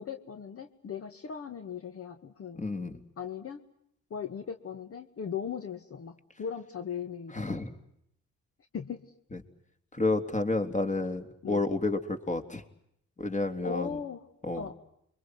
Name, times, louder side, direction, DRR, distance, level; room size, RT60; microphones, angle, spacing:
voice 1, 0.0-2.6 3.2-3.6 4.1-7.5 8.7-9.1 11.4-11.7 13.6-14.3 14.5-14.7, left 7 dB, 50° left, 7 dB, 2.1 m, -38 dB
voice 2, 2.6-3.0 7.3-7.7 9.9-12.6 13.2-13.9 14.4-14.6, left 2 dB, 25° left, 7 dB, 3.7 m, -30 dB
30.0 x 24.5 x 7.9 m, 0.74 s
cardioid pair, 90°, 30 cm